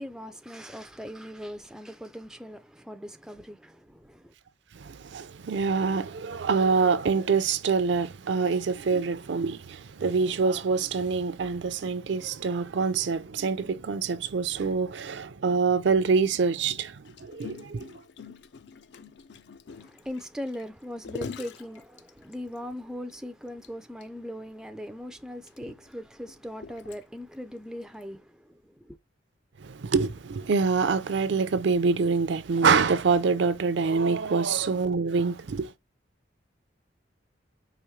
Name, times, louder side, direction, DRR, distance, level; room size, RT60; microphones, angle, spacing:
voice 1, 0.0-4.3 19.7-29.0, equal, 5° right, 0.3 m, -40 dB
voice 2, 4.7-18.0 29.6-35.7, right 5 dB, 65° right, 0.5 m, -25 dB
Gurgling, 17.0-22.6 23.1-23.2 23.5-23.7 24.0-24.1 24.9-27.4 28.0-28.2, left 5 dB, 60° left, 0.4 m, -44 dB
4.9 x 3.0 x 3.1 m
head